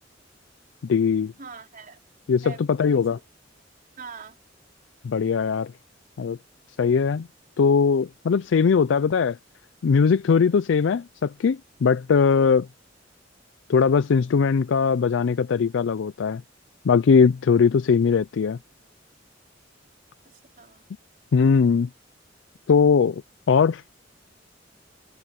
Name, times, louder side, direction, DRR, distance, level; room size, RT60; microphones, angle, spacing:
voice 1, 0.8-1.3 2.3-3.2 5.0-5.7 6.2-6.4 6.8-7.3 7.6-9.4 9.8-12.7 13.7-16.4 16.8-18.6 21.3-21.9 22.7-23.2 23.5-23.8, left 5 dB, 75° left, 0.4 m, -20 dB
voice 2, 1.4-2.0 2.4-3.1 4.0-4.4 20.2-20.9, right 4 dB, 50° right, 3.7 m, -43 dB
head